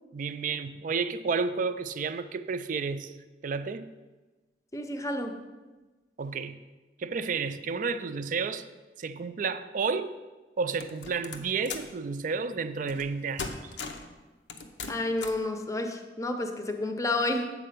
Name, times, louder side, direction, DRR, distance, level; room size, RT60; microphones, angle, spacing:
voice 1, 0.1-3.1 3.4-3.9 6.2-6.6 7.0-8.6 9.0-10.2 10.6-13.7, right 5 dB, 50° right, 12 dB, 0.4 m, -31 dB
voice 2, 4.7-5.4 14.9-17.5, left 2 dB, 20° left, 6 dB, 0.6 m, -30 dB
sound 1, 10.8-12.0 12.9-13.1 13.4-14.1 14.5-15.5, left 4 dB, 80° left, 0.7 m, -38 dB
7.7 x 4.4 x 6.5 m, 1.2 s
head